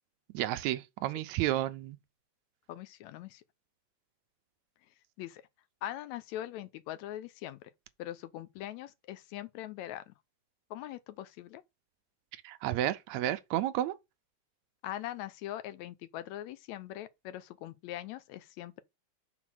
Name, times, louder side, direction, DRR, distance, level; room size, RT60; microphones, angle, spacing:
voice 1, 0.3-2.0 12.4-13.9, right 13 dB, 80° right, 1.9 m, -31 dB
voice 2, 2.7-3.4 5.2-5.4 5.8-7.6 8.0-10.1 10.7-11.6 14.8-18.8, left 13 dB, 85° left, 1.9 m, -41 dB
5.9 x 4.0 x 6.1 m
omnidirectional pair, 3.3 m